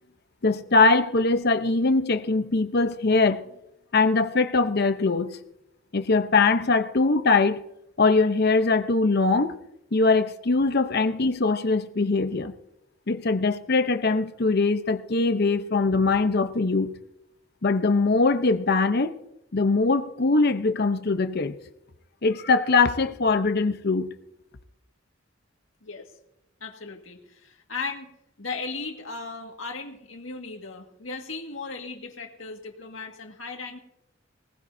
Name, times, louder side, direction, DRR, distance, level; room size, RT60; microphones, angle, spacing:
voice 1, 0.4-3.5 3.9-5.4 5.9-7.6 8.0-9.6 9.9-12.5 13.1-17.0 17.6-19.1 19.5-21.6 22.2-24.1, left 3 dB, 55° left, 0.8 m, -22 dB
voice 2, 26.6-28.1 28.4-33.8, left 4 dB, 85° left, 1.9 m, -36 dB
20.0 x 18.5 x 2.7 m
head